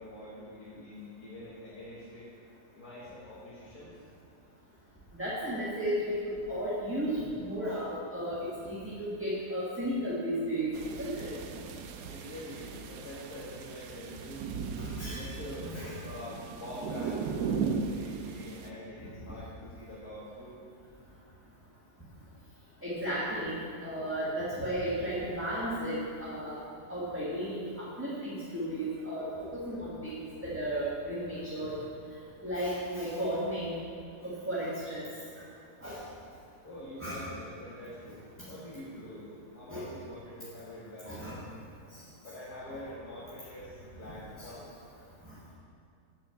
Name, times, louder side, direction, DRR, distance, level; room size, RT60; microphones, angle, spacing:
voice 1, 0.0-2.3 2.7-3.9 12.1-14.6 15.0-15.7 16.0-20.6 36.6-38.1 38.5-41.5 42.2-44.7, left 1 dB, 75° left, -9 dB, 2.4 m, -45 dB
voice 2, 5.1-8.4 8.6-11.3 14.8-15.2 15.6-15.9 22.8-26.6 26.9-31.8 32.4-33.8 34.2-35.1 35.8-36.0 37.0-37.2 39.7-39.9 41.1-41.4 44.4-44.5 45.2-45.3, equal, 10° right, -9 dB, 1.6 m, -34 dB
sound 1, 10.7-18.7, right 5 dB, 85° right, 1.2 m, -37 dB
8.3 x 6.2 x 8.1 m, 2.5 s
omnidirectional pair, 1.7 m